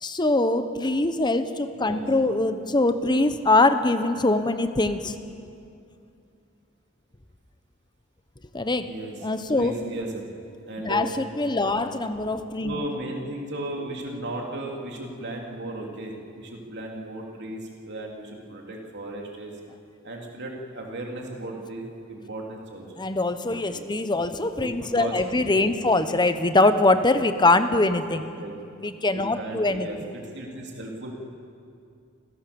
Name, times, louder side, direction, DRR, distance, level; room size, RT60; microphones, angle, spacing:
voice 1, 0.0-5.2 8.5-8.9 9.2-9.8 10.8-12.8 23.0-28.3 28.8-29.9, left 2 dB, 20° left, 10 dB, 1.0 m, -23 dB
voice 2, 1.7-2.0 8.8-9.1 9.5-10.2 10.7-11.1 11.5-11.8 12.6-19.5 20.0-23.0 23.7-23.8 24.6-25.2 25.5-25.8 28.1-28.5 29.1-31.1, right 1 dB, 55° right, 0 dB, 3.2 m, -36 dB
28.0 x 16.0 x 7.1 m, 2.5 s
head